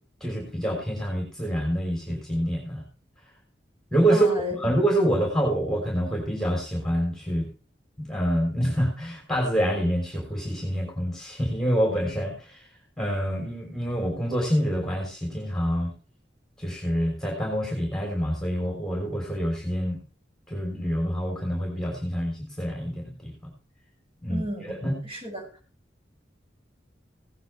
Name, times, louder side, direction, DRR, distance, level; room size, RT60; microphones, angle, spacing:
voice 1, 0.2-2.8 3.9-4.3 4.6-7.5 8.0-12.6 13.0-15.9 16.6-20.0 20.5-23.3 24.2-24.4 24.8-25.0, equal, 5° left, 0 dB, 3.4 m, -26 dB
voice 2, 4.1-4.5 24.3-25.4, equal, 35° right, -2 dB, 6.8 m, -33 dB
17.0 x 9.3 x 3.3 m, 0.35 s
head